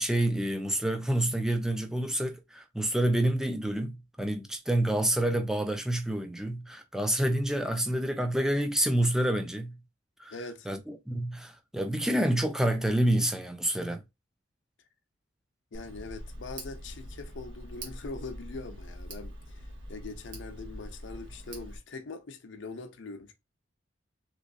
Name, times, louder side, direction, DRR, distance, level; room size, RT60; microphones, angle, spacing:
voice 1, 0.0-9.8 10.2-10.3 10.7-14.0, right 1 dB, 5° right, 0.4 m, -28 dB
voice 2, 10.3-10.7 15.7-23.3, left 3 dB, 75° left, 0.6 m, -42 dB
Tick, 15.7-21.8, equal, 75° right, 1.4 m, -43 dB
3.5 x 3.0 x 2.5 m
head